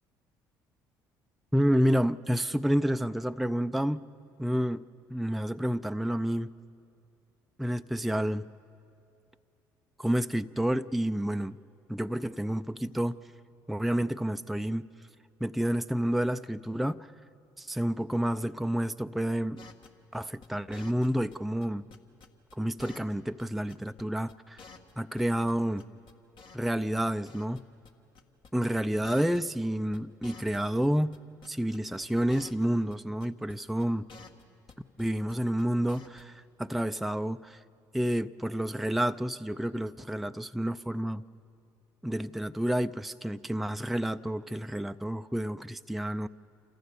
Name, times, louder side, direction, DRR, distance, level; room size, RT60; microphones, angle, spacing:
voice 1, 1.5-4.0 4.4-4.8 5.1-6.5 7.6-8.5 10.0-11.6 11.9-13.2 13.7-14.9 15.4-17.1 17.6-19.6 20.1-21.8 22.5-24.6 25.0-25.8 26.5-27.6 28.5-31.2 31.4-34.1 35.0-37.6 37.9-41.2 42.0-46.3, equal, ahead, 9 dB, 0.4 m, -29 dB
sound 1, 19.6-21.4 21.6-23.1 23.4-23.5 23.7-24.0 24.3-24.4 24.6-25.5 25.8-26.7 27.0-27.6 27.8-27.9 28.1-28.5 28.7-28.8 29.0-29.7 29.9-31.2 31.4-32.6 32.9-33.0 33.2-33.5 33.8-35.0 35.3-35.6 35.9-36.2, left 4 dB, 55° left, 1.6 m, -51 dB
27.5 x 14.5 x 7.0 m, 2.6 s
hypercardioid pair, 55°, 10 cm